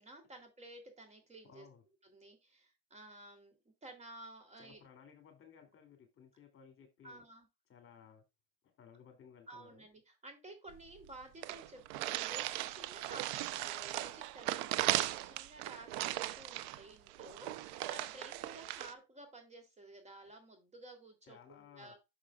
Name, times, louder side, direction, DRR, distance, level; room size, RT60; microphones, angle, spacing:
voice 1, 0.0-1.7 2.0-3.5 3.8-4.8 7.0-7.5 9.5-22.0, right 2 dB, 20° right, 4 dB, 3.0 m, -53 dB
voice 2, 1.4-1.8 4.6-7.2 7.7-8.2 8.8-9.9 21.3-22.0, left 7 dB, 40° left, 6 dB, 2.8 m, -58 dB
sound 1, 10.7-10.8 11.0-11.1 11.4-18.9, right 15 dB, 80° right, 0.8 m, -38 dB
11.5 x 6.5 x 2.4 m, 0.23 s
supercardioid pair, 120°, 33 cm